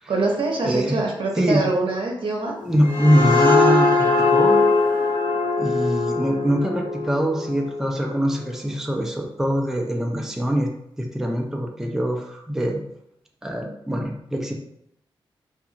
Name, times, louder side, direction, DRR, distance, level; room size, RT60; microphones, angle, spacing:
voice 1, 0.1-2.6, right 3 dB, 65° right, -1 dB, 0.7 m, -24 dB
voice 2, 0.6-1.0 1.4-1.6 2.7-4.7 5.6-10.7 11.0-12.8 13.4-14.5, equal, 5° right, 1 dB, 0.4 m, -23 dB
sound 1, 2.6-8.1, left 3 dB, 65° left, 0.6 m, -21 dB
2.7 x 2.4 x 2.7 m, 0.75 s
cardioid pair, 65°, 9 cm